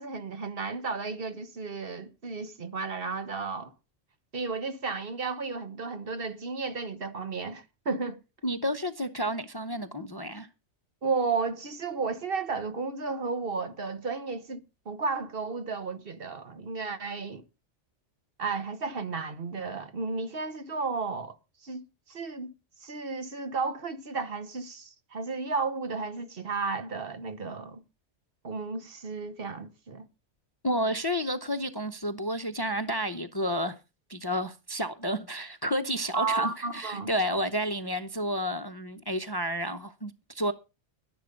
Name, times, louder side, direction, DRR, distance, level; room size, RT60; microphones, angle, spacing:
voice 1, 0.0-3.7 4.3-8.2 11.0-17.4 18.4-21.4 21.6-22.5 22.8-27.8 28.4-30.1 36.1-37.1, right 4 dB, 55° right, 1.3 m, -33 dB
voice 2, 8.4-10.5 30.6-33.8 34.1-40.5, equal, 25° left, 0.7 m, -31 dB
12.0 x 10.5 x 5.2 m
omnidirectional pair, 1.2 m